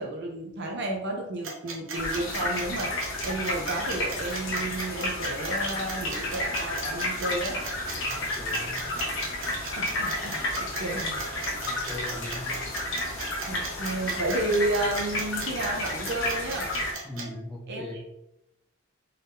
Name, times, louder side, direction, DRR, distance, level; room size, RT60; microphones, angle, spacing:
voice 1, 0.0-7.6 9.8-10.4 10.8-11.2 13.4-16.7 17.7-18.1, right 2 dB, 60° right, 1 dB, 0.7 m, -32 dB
sound 1, 1.4-17.3, right 4 dB, 85° right, 0.9 m, -37 dB
sound 2, 1.9-16.9, left 1 dB, 65° left, 1.0 m, -31 dB
voice 2, 8.1-8.8 11.6-12.5 17.0-18.0, left 1 dB, 5° left, -6 dB, 0.9 m, -39 dB
3.9 x 3.5 x 2.6 m, 0.86 s
head